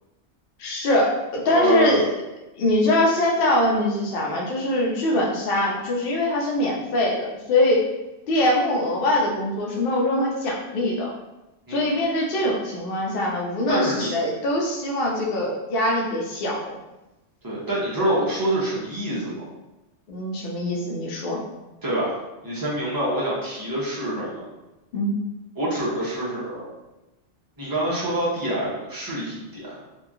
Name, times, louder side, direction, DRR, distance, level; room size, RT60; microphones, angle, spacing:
voice 1, 0.6-2.1 2.6-7.9 8.3-11.1 11.7-16.8 20.1-21.4 24.9-25.2, left 1 dB, 60° left, -2 dB, 0.7 m, -23 dB
voice 2, 1.5-2.0 11.7-11.9 13.7-14.1 17.4-19.5 21.8-22.1 22.4-24.4 25.6-26.7 27.6-29.8, right 1 dB, 25° right, -7 dB, 0.4 m, -26 dB
2.8 x 2.2 x 2.4 m, 0.99 s
omnidirectional pair, 1.2 m